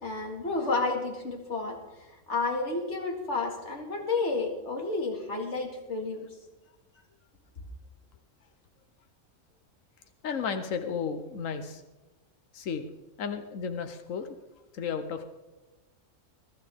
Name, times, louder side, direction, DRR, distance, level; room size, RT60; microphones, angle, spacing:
voice 1, 0.0-6.3, left 3 dB, 65° left, 1 dB, 2.4 m, -31 dB
voice 2, 10.2-11.8 12.5-12.9 13.2-14.4 14.7-15.3, left 6 dB, 85° left, 8 dB, 1.3 m, -33 dB
22.0 x 12.0 x 3.6 m, 1.1 s
omnidirectional pair, 1.3 m